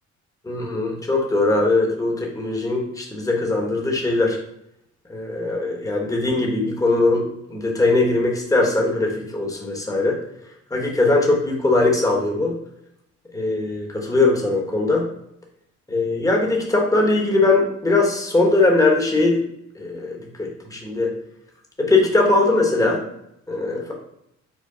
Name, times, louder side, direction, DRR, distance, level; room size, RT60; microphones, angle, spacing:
voice 1, 0.4-4.4 5.1-10.2 10.7-12.6 13.3-15.1 15.9-19.4 19.7-21.1 21.8-23.0 23.5-23.9, left 2 dB, 10° left, -1 dB, 1.1 m, -20 dB
4.7 x 2.2 x 4.8 m, 0.78 s
cardioid pair, 90°, 30 cm